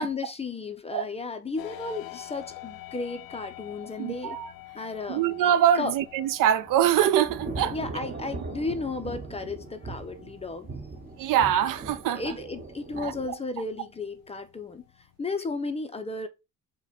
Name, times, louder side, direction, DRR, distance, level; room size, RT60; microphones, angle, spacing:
voice 1, 0.0-4.4 4.7-5.2 5.7-5.9 7.7-10.7 12.2-14.8 15.2-16.3, left 3 dB, 20° left, 0.5 m, -34 dB
sound 1, 1.6-15.2, left 17 dB, 90° left, 0.5 m, -48 dB
voice 2, 4.0-4.5 5.1-7.8 11.2-12.4 13.0-13.1, right 10 dB, 65° right, 0.5 m, -24 dB
Thunder / Rain, 6.0-13.3, right 3 dB, 25° right, 0.8 m, -40 dB
4.9 x 2.2 x 4.1 m
cardioid pair, 135°, 35 cm